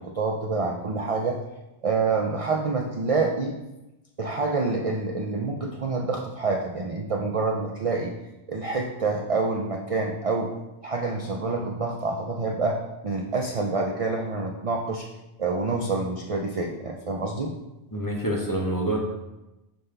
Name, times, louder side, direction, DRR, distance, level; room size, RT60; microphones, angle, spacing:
voice 1, 0.0-1.4 1.8-3.6 4.2-8.1 8.5-10.5 10.8-12.8 13.0-15.1 15.4-17.5, right 3 dB, 55° right, 1 dB, 0.4 m, -27 dB
voice 2, 17.9-19.0, right 1 dB, 20° left, -2 dB, 0.8 m, -26 dB
5.6 x 5.3 x 3.3 m, 0.98 s
omnidirectional pair, 1.2 m